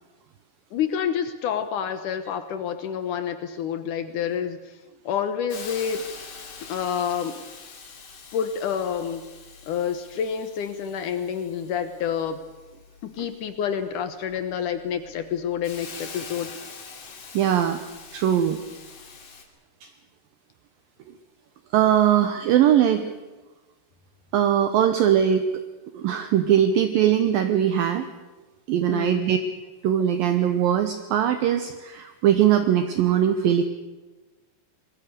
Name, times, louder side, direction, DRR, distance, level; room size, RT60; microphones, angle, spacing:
voice 1, 0.7-4.8 5.0-6.1 6.7-7.4 8.3-9.3 9.7-12.4 13.0-16.5 28.9-29.3, left 8 dB, 70° left, 10 dB, 2.0 m, -28 dB
Hiss, 5.5-19.4, left 5 dB, 40° left, 2.8 m, -44 dB
voice 2, 17.3-17.8 18.1-18.6 19.8-19.9 21.7-23.1 24.3-25.4 25.9-28.1 28.7-29.4 29.8-33.6, right 10 dB, 75° right, 8 dB, 2.3 m, -20 dB
25.0 x 20.5 x 6.7 m, 1.2 s
omnidirectional pair, 4.9 m